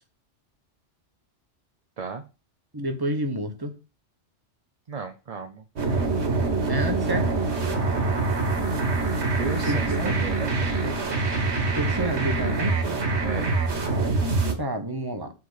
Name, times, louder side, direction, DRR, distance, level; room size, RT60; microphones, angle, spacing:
voice 1, 2.7-3.7 6.7-7.3 9.7-10.1 11.7-12.8 14.6-15.3, right 1 dB, 20° right, 1.2 m, -29 dB
voice 2, 4.9-5.6 9.4-11.4 13.2-13.6, right 4 dB, 40° right, 0.7 m, -35 dB
sound 1, 5.8-14.5, right 3 dB, 65° right, 1.8 m, -25 dB
7.1 x 5.1 x 4.0 m
omnidirectional pair, 1.2 m